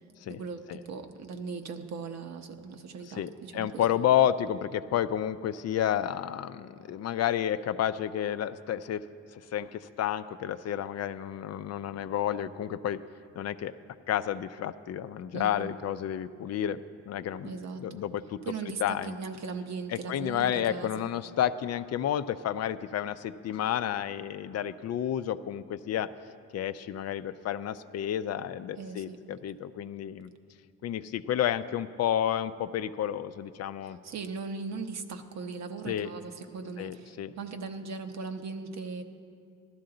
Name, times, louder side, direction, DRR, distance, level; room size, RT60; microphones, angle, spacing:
voice 1, 0.3-4.0 15.3-15.7 17.4-17.8 18.4-21.1 28.8-29.2 33.8-39.0, right 4 dB, 60° right, 6 dB, 0.9 m, -39 dB
voice 2, 3.2-9.0 9.3-13.0 13.4-13.7 14.1-16.8 17.1-18.4 18.8-19.2 19.9-26.1 26.5-30.3 30.8-34.0 35.9-36.1 36.8-37.3, left 10 dB, 55° left, 12 dB, 0.5 m, -30 dB
15.5 x 12.5 x 3.9 m, 2.3 s
cardioid pair, 90°, 30 cm